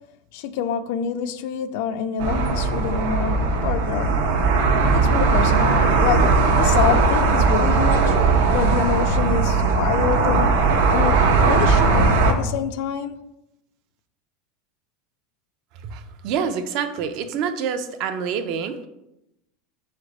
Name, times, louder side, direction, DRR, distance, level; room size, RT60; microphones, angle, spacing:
voice 1, 0.3-4.2 4.9-8.2 8.5-10.6 10.9-13.2, left 8 dB, 60° left, 0.3 m, -26 dB
sound 1, 2.2-12.3, right 4 dB, 80° right, 0.7 m, -18 dB
voice 2, 15.8-18.9, right 7 dB, 45° right, 0.4 m, -27 dB
4.0 x 3.3 x 3.9 m
supercardioid pair, 165°, 0 cm